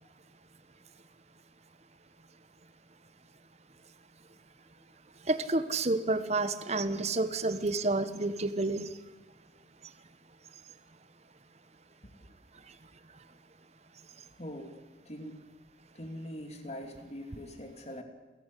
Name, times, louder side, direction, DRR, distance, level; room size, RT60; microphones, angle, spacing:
voice 1, 5.3-8.9, right 2 dB, 40° right, 12 dB, 1.2 m, -29 dB
voice 2, 12.2-12.7 14.4-15.5 15.9-18.0, equal, 40° left, 5 dB, 2.8 m, -43 dB
30.0 x 14.5 x 8.4 m, 1.1 s
head